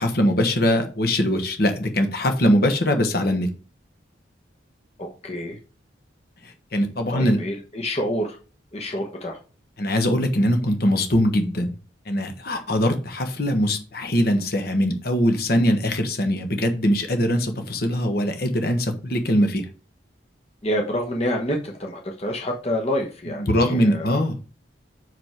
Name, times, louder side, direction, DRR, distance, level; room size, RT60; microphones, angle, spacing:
voice 1, 0.0-3.5 6.4-7.4 9.8-11.7 12.1-19.7 23.4-24.4, equal, 55° left, 1.3 m, -22 dB
voice 2, 5.0-5.6 7.1-8.4 8.7-9.4 20.6-24.2, equal, 35° left, 1.1 m, -27 dB
6.1 x 5.3 x 4.5 m
head